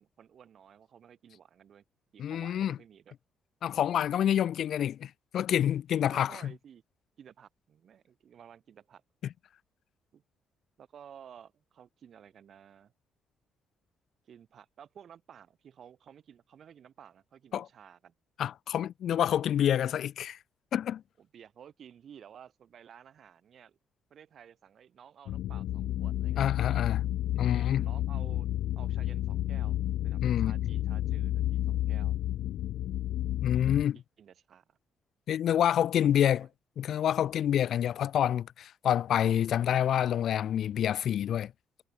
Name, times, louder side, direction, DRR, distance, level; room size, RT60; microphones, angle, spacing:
voice 1, 0.0-1.8 2.1-3.2 6.1-6.8 7.2-9.0 10.1-10.2 10.8-12.9 14.2-18.1 21.2-23.8 24.1-26.8 27.3-28.5 28.7-29.8 30.0-32.2 33.9-34.8 36.0-36.5, right 8 dB, 40° right, 6.1 m, -54 dB
voice 2, 2.2-2.8 3.6-6.4 17.5-17.7 18.4-20.4 20.7-21.0 26.4-27.0 27.4-27.8 30.2-30.5 33.4-34.0 35.3-36.5 36.8-41.5, left 10 dB, 50° left, 0.7 m, -27 dB
sound 1, 25.3-33.8, left 13 dB, 75° left, 1.4 m, -31 dB
cardioid pair, 180°, 0 cm